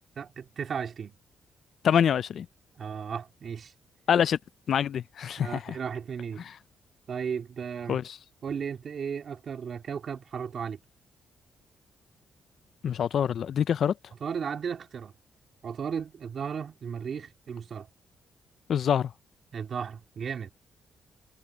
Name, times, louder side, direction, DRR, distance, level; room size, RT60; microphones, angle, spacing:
voice 1, 0.2-1.1 2.8-3.7 5.4-6.4 7.1-8.0 8.4-10.8 14.2-15.1 15.6-17.9 19.5-20.5, right 7 dB, 50° right, 2.9 m, -35 dB
voice 2, 1.8-2.5 4.1-4.4 4.7-5.7 7.9-8.2 12.8-13.9 18.7-19.1, left 8 dB, 60° left, 0.5 m, -25 dB
cardioid pair, 135°, 0 cm